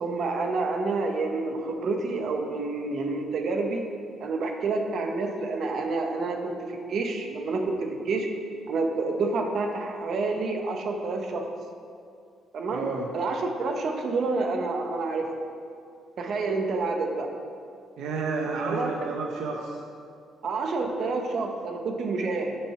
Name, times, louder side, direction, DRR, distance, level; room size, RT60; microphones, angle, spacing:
voice 1, 0.0-3.9 4.2-8.3 8.7-11.5 12.5-12.9 13.1-15.2 16.2-17.3 18.5-18.9 20.4-22.6, right 3 dB, 60° right, 3 dB, 0.9 m, -28 dB
voice 2, 12.7-13.1 18.0-19.8, right 4 dB, 85° right, 1 dB, 0.6 m, -31 dB
8.6 x 4.4 x 5.7 m, 2.4 s
cardioid pair, 90°, 0 cm